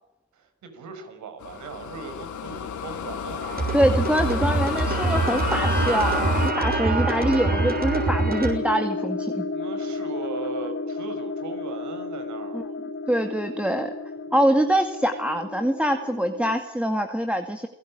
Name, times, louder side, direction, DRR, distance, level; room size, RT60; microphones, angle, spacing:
voice 1, 0.3-3.8 6.8-7.1 9.5-12.7, right 4 dB, 70° right, 8 dB, 6.3 m, -38 dB
sound 1, 1.4-6.5, left 9 dB, 75° left, 3.1 m, -31 dB
sound 2, 3.4-8.5, right 3 dB, 30° right, 6.9 m, -25 dB
voice 2, 3.7-9.5 12.5-12.6 13.1-13.9 14.3-17.7, equal, 5° right, 5 dB, 2.1 m, -24 dB
sound 3, 4.9-16.6, left 3 dB, 40° left, 2.3 m, -33 dB
28.0 x 18.0 x 8.9 m, 0.94 s
cardioid pair, 90°, 30 cm